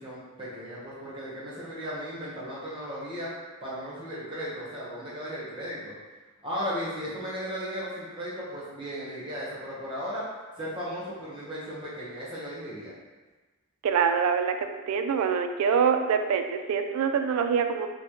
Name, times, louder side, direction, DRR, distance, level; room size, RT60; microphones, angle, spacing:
voice 1, 0.0-3.3 3.6-5.9 6.4-10.2 10.6-12.9, equal, 25° right, -8 dB, 1.0 m, -36 dB
voice 2, 13.8-17.9, right 6 dB, 85° right, 7 dB, 0.3 m, -25 dB
4.0 x 2.2 x 3.0 m, 1.3 s
head